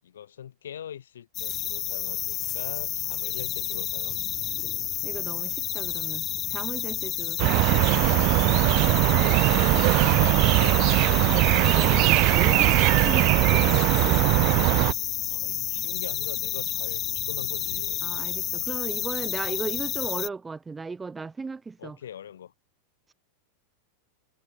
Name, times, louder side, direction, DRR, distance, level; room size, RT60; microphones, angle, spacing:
voice 1, 0.0-4.5 8.9-9.7 10.0-10.8 15.3-18.0 21.2-21.3 21.8-22.5, left 9 dB, 65° left, 5.2 m, -42 dB
sound 1, 1.3-20.3, left 11 dB, 30° left, 1.6 m, -30 dB
voice 2, 5.0-8.1 11.2-14.2 18.0-22.0, right 4 dB, 15° right, 6.9 m, -36 dB
sound 2, 7.4-14.9, right 27 dB, 40° right, 1.1 m, -20 dB
figure-of-eight pair, 90°, 0 cm